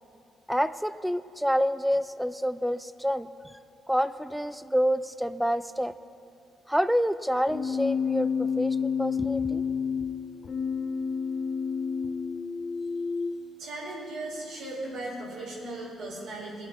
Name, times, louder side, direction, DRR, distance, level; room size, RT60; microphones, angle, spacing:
voice 1, 0.5-3.5 3.9-5.9 6.7-9.6, equal, ahead, 14 dB, 0.4 m, -28 dB
Keyboard (musical), 7.5-13.4, left 6 dB, 50° left, 0.8 m, -29 dB
voice 2, 13.6-16.7, right 2 dB, 85° right, -4 dB, 3.9 m, -37 dB
20.0 x 8.7 x 4.5 m, 2.4 s
cardioid pair, 90°, 0 cm